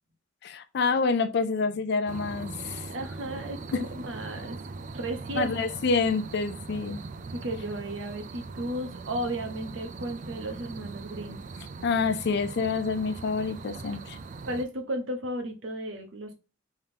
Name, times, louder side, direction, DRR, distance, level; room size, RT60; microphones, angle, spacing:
voice 1, 0.4-2.8 3.7-3.8 5.4-7.0 11.8-14.2, left 4 dB, 60° left, 0.4 m, -27 dB
sound 1, 2.1-14.7, right 3 dB, 40° right, 0.4 m, -41 dB
voice 2, 2.9-4.6 4.9-5.5 7.3-11.4 14.4-16.4, right 1 dB, 80° right, 0.8 m, -34 dB
3.6 x 2.8 x 3.4 m
head